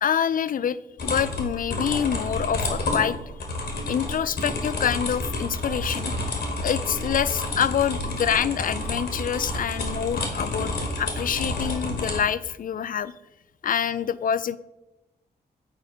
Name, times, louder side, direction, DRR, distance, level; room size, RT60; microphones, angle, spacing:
voice 1, 0.0-3.2 3.9-6.1 6.6-13.1 13.6-14.6, left 8 dB, 50° left, 16 dB, 0.4 m, -26 dB
sound 1, 1.0-12.2, left 2 dB, 75° left, 1.8 m, -29 dB
7.8 x 4.4 x 4.4 m, 0.96 s
cardioid pair, 55°, 18 cm